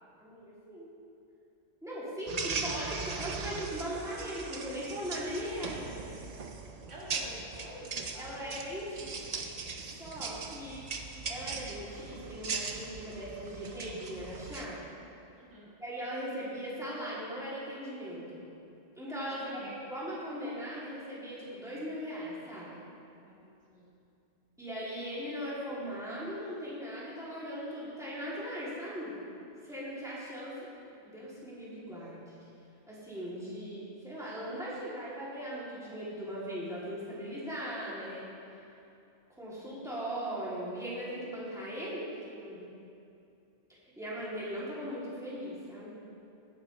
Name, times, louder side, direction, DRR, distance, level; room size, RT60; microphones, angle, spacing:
voice 1, 0.2-0.9 1.8-6.1 8.2-9.4 10.0-10.8 11.3-14.8 15.8-18.2 19.0-22.7 24.6-29.2 29.6-30.7 31.0-32.2 32.9-38.3 39.4-42.6 44.0-45.9, equal, 5° right, -9 dB, 2.8 m, -39 dB
sound 1, 2.3-14.7, right 4 dB, 40° right, 0.7 m, -39 dB
voice 2, 6.9-8.7 15.4-15.8 19.3-19.7 23.3-24.0, equal, 80° right, -5 dB, 2.3 m, -49 dB
16.5 x 9.3 x 3.3 m, 2.7 s
omnidirectional pair, 1.2 m